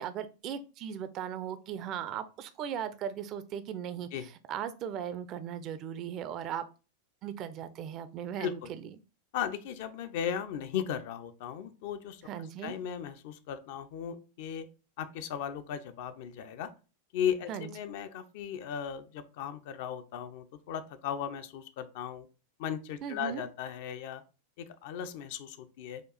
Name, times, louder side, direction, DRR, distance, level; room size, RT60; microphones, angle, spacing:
voice 1, 0.0-6.6 7.2-9.0 12.3-12.7 17.5-17.7 23.0-23.4, right 9 dB, 35° right, 11 dB, 0.5 m, -38 dB
voice 2, 9.3-12.2 12.6-14.7 15.0-16.7 17.1-22.3 22.6-24.2 24.6-26.0, left 9 dB, 50° left, 10 dB, 0.5 m, -36 dB
5.0 x 2.4 x 4.0 m, 0.33 s
figure-of-eight pair, 90°, 0 cm